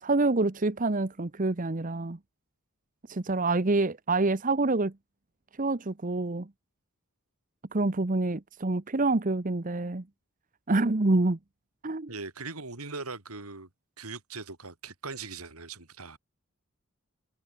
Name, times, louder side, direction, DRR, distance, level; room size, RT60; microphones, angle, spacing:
voice 1, 0.0-2.2 3.1-4.9 5.6-6.5 7.7-10.0 10.7-11.4 11.8-12.1, right 2 dB, 35° right, 0.9 m, -27 dB
voice 2, 12.1-13.7 14.0-16.2, right 4 dB, 85° right, 3.7 m, -40 dB
head